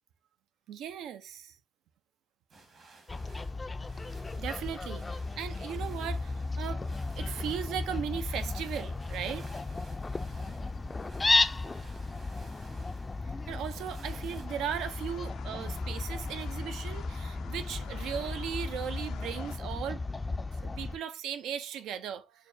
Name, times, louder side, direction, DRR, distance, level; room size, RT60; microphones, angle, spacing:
voice 1, 0.7-1.6 4.4-6.8 7.2-9.4 13.2-20.0 20.6-22.5, right 9 dB, 80° right, 0.4 m, -37 dB
sound 1, 2.5-14.5, right 3 dB, 50° right, 1.3 m, -56 dB
Fowl, 3.1-21.0, left 3 dB, 25° left, 0.3 m, -34 dB
sound 2, 14.5-19.6, left 9 dB, 90° left, 0.5 m, -50 dB
6.5 x 2.2 x 2.6 m
cardioid pair, 95°, 0 cm